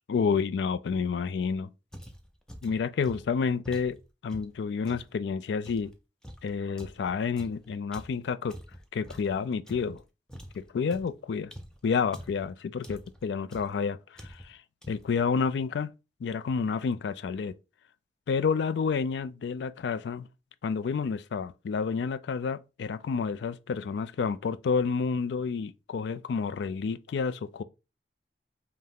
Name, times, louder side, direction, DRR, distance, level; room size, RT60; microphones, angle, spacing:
voice 1, 0.1-1.7 2.6-4.0 4.2-5.9 6.4-8.6 8.9-10.0 10.5-11.5 11.8-14.6 14.9-15.9 16.2-17.6 18.3-20.3 20.6-27.6, left 5 dB, 75° left, 0.3 m, -29 dB
sound 1, 1.9-5.1 5.6-10.0 10.3-12.5 12.8-13.2 13.5-13.8 14.2-14.6 14.8-15.2, equal, 5° left, 0.4 m, -46 dB
5.5 x 2.1 x 3.5 m
head